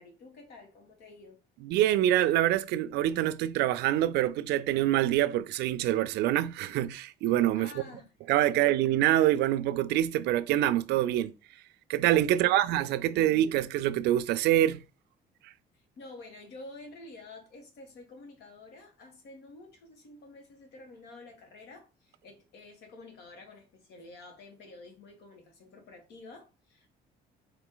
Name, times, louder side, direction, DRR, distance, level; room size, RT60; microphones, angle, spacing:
voice 1, 0.0-1.4 7.5-8.7 12.3-12.7 13.1-13.4 15.7-26.9, left 2 dB, 75° left, 1.5 m, -50 dB
voice 2, 1.6-7.7 8.3-11.3 11.9-14.8, right 13 dB, 80° right, 0.4 m, -25 dB
4.0 x 2.6 x 3.8 m
cardioid pair, 110°, 17 cm